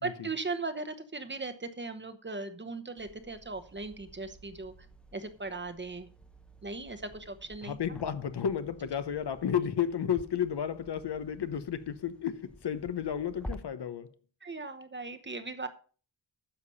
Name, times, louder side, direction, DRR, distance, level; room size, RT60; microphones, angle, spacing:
voice 1, 0.0-4.7 5.1-6.1 6.6-7.8 14.4-15.7, right 3 dB, 25° right, 1.0 m, -38 dB
sound 1, 3.0-13.6, equal, ahead, 0.8 m, -50 dB
voice 2, 7.6-14.1, left 8 dB, 70° left, 0.9 m, -32 dB
10.0 x 6.9 x 5.5 m
wide cardioid pair, 160°, 43 cm